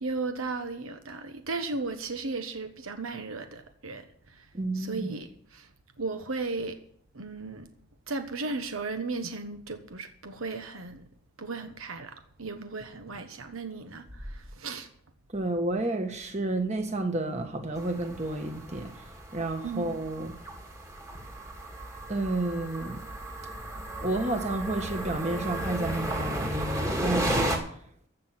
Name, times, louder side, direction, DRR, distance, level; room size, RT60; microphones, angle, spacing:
voice 1, 0.0-4.5 4.7-5.3 5.5-5.7 6.0-6.8 7.1-7.7 8.1-11.0 11.4-14.9 19.6-19.9, right 3 dB, 75° right, 1.2 m, -35 dB
voice 2, 4.5-5.2 15.3-20.4 22.1-23.0 24.0-27.7, right 2 dB, 30° right, 1.5 m, -31 dB
sound 1, 17.8-27.6, right 1 dB, 15° right, 1.7 m, -34 dB
15.0 x 6.2 x 7.5 m
head